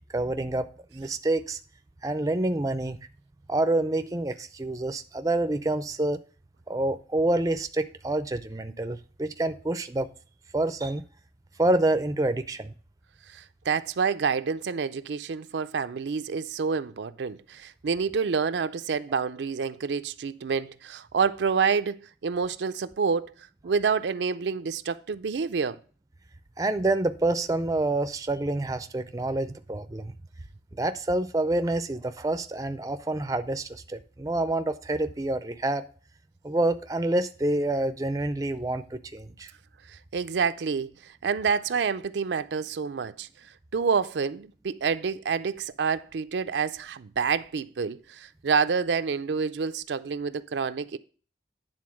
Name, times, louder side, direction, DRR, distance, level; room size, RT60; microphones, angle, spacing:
voice 1, 0.1-1.6 2.0-3.0 3.5-6.2 6.7-10.1 10.5-11.0 11.6-12.7 26.6-30.1 30.7-35.8 36.4-39.5, right 2 dB, 20° right, 0.4 m, -27 dB
voice 2, 13.3-23.3 23.6-25.8 39.9-43.3 43.7-51.0, right 5 dB, 75° right, 0.4 m, -28 dB
9.6 x 3.8 x 6.2 m
head